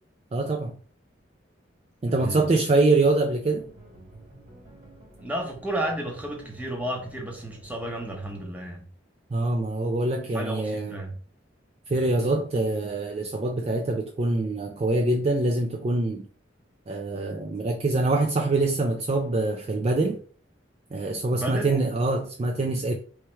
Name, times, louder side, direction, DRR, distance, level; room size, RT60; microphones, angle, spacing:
voice 1, 0.3-0.7 2.0-3.7 9.3-11.0 11.9-16.3 16.9-20.2 20.9-22.9, right 2 dB, 30° right, 0.3 m, -24 dB
voice 2, 2.0-2.5 5.2-8.8 10.2-11.2 21.3-21.7, right 1 dB, 10° right, 0.9 m, -32 dB
sound 1, 3.4-8.5, right 1 dB, 50° right, 2.0 m, -50 dB
3.2 x 3.1 x 4.4 m
head